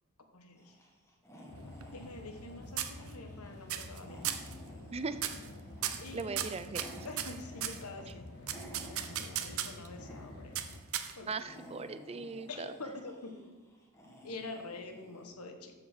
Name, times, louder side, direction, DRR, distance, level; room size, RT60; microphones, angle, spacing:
voice 1, 0.3-0.8 1.9-4.3 6.0-6.4 7.0-8.3 8.8-10.6 11.1-11.3 12.5-13.6 14.2-15.7, left 2 dB, 85° left, 5 dB, 1.3 m, -46 dB
sound 1, 0.6-9.7 10.0-10.8 11.1-15.3, equal, 15° left, 1.7 m, -53 dB
sound 2, 1.5-10.8, left 2 dB, 50° left, 0.7 m, -49 dB
sound 3, 1.6-2.5 2.8-3.4 3.7-4.5 5.2-5.5 5.8-7.8 8.5-9.9 10.6-11.4, right 10 dB, 70° right, 0.8 m, -36 dB
voice 2, 4.9-5.2 6.1-7.1 8.1-8.2 11.3-12.7, right 4 dB, 25° right, 11 dB, 0.5 m, -39 dB
13.5 x 5.0 x 5.9 m, 1.3 s
head